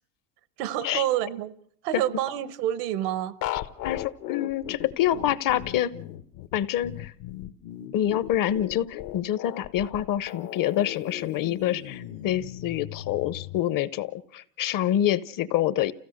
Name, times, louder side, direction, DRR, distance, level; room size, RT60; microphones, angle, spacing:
voice 1, 0.6-1.5 1.8-3.4, right 12 dB, 80° right, 1.2 m, -28 dB
sound 1, 3.4-13.6, left 13 dB, 65° left, 1.2 m, -37 dB
voice 2, 3.8-5.9 6.5-7.1 7.9-15.9, left 12 dB, 45° left, 0.9 m, -26 dB
29.5 x 16.0 x 6.5 m
supercardioid pair, 115°, 47 cm